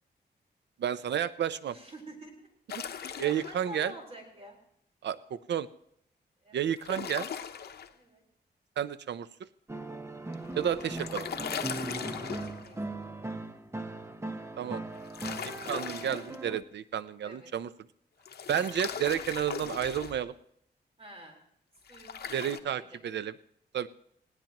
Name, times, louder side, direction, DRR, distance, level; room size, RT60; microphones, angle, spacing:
voice 1, 0.8-1.7 3.2-3.9 5.0-5.7 6.5-7.3 8.8-9.3 10.6-11.3 14.6-14.8 15.7-17.7 18.5-20.3 22.3-23.3 23.7-23.9, right 9 dB, 80° right, 15 dB, 0.6 m, -31 dB
voice 2, 1.6-2.5 2.9-4.6 6.4-6.6 7.9-8.2 10.0-10.1 11.9-12.8 13.1-13.2 17.2-17.5 21.0-21.4 21.9-23.1, equal, 35° right, 1 dB, 4.3 m, -49 dB
sound 1, 2.7-3.6 6.8-7.9 10.3-12.7 14.9-16.4 18.3-20.2 21.9-22.6, left 7 dB, 65° left, 0.9 m, -39 dB
sound 2, 9.7-16.6, right 2 dB, 15° right, 0.8 m, -39 dB
19.5 x 17.5 x 3.0 m, 0.71 s
wide cardioid pair, 115°, 18 cm